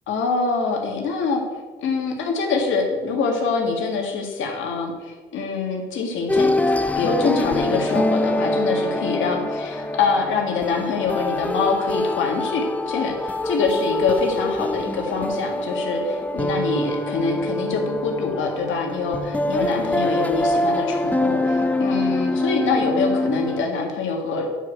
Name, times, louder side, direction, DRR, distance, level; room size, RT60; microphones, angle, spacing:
voice 1, 0.1-1.4 1.8-6.5 7.0-24.5, left 4 dB, 80° left, 1 dB, 1.9 m, -24 dB
sound 1, 6.3-23.6, left 1 dB, 10° left, 0.5 m, -24 dB
8.9 x 4.8 x 6.5 m, 1.3 s
cardioid pair, 90°, 20 cm